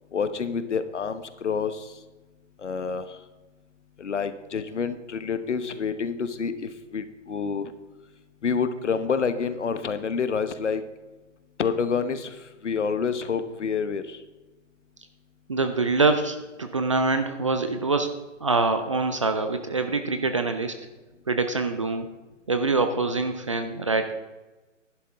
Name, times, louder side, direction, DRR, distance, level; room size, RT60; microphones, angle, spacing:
voice 1, 0.1-1.8 2.6-3.0 4.0-7.7 8.4-10.8 11.6-12.3 12.6-14.2, left 6 dB, 65° left, 11 dB, 1.1 m, -28 dB
voice 2, 15.5-20.8 21.3-22.1 22.5-24.1, right 3 dB, 25° right, 8 dB, 0.4 m, -25 dB
11.0 x 11.0 x 3.5 m, 1.1 s
figure-of-eight pair, 140°, 38 cm